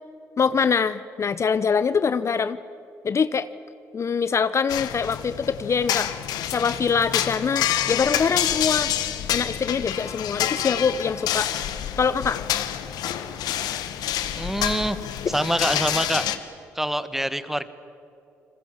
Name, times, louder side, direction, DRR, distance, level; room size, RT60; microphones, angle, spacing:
voice 1, 0.4-2.6 3.0-3.5 3.9-6.1 6.5-8.9 9.3-11.5 12.0-12.4, left 6 dB, 45° left, 14 dB, 0.9 m, -24 dB
sound 1, 4.7-16.4, left 11 dB, 75° left, 1.4 m, -27 dB
voice 2, 14.4-15.0 15.3-16.3 16.7-17.7, equal, 5° right, 13 dB, 1.7 m, -25 dB
29.5 x 21.0 x 7.5 m, 2.6 s
hypercardioid pair, 50°, 7 cm